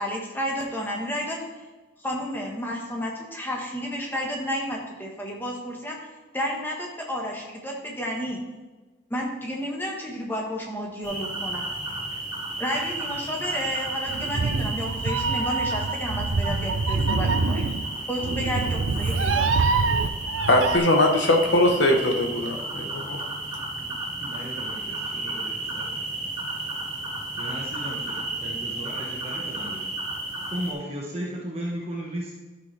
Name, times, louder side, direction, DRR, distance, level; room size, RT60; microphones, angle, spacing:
voice 1, 0.0-1.4 2.0-6.0 6.3-8.4 9.1-11.6 12.6-17.6 18.1-19.6, equal, 10° left, -1 dB, 1.3 m, -31 dB
sound 1, 11.0-30.7, right 2 dB, 15° right, 3.1 m, -33 dB
Meow, 14.1-20.8, right 4 dB, 80° right, 0.5 m, -25 dB
voice 2, 20.4-23.2, left 1 dB, 70° left, 3 dB, 1.1 m, -21 dB
voice 3, 24.2-25.8 27.4-29.9 30.5-32.3, right 1 dB, 30° right, -4 dB, 1.3 m, -35 dB
12.0 x 6.1 x 3.3 m, 1.2 s
head